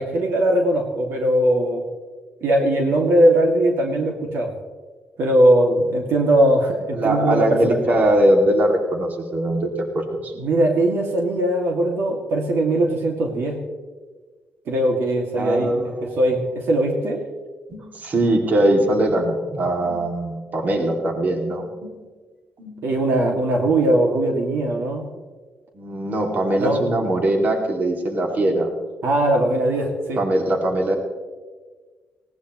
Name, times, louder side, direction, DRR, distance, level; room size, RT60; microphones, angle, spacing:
voice 1, 0.0-1.8 2.4-4.5 5.2-7.8 10.4-13.6 14.7-15.7 16.0-17.2 22.8-25.1 26.6-26.8 29.0-30.2, right 1 dB, 75° right, 1 dB, 2.3 m, -20 dB
voice 2, 6.9-9.7 9.9-10.3 15.4-16.2 17.7-21.9 22.6-22.7 25.7-28.7 30.2-31.0, right 1 dB, 45° right, 2 dB, 2.6 m, -21 dB
19.5 x 17.5 x 3.1 m, 1.4 s
cardioid pair, 140°, 4 cm